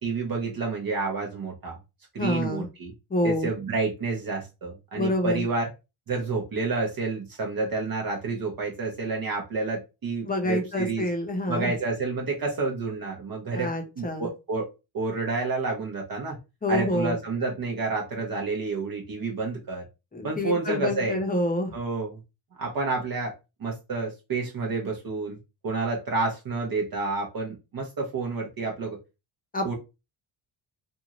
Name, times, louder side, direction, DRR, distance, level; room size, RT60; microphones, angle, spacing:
voice 1, 0.0-1.8 2.1-2.9 3.2-5.7 6.1-11.1 11.5-14.7 14.9-16.4 16.7-19.9 20.2-21.2 21.7-22.2 22.6-23.3 23.6-25.4 25.6-29.0 29.6-29.7, right 3 dB, 45° right, 0 dB, 0.8 m, -29 dB
voice 2, 2.2-2.7 3.1-3.5 4.9-5.5 10.3-11.7 13.5-14.3 16.6-17.2 20.1-21.7 29.5-29.7, left 1 dB, 15° left, 4 dB, 0.7 m, -27 dB
2.7 x 2.5 x 2.9 m, 0.26 s
cardioid pair, 90°, 50 cm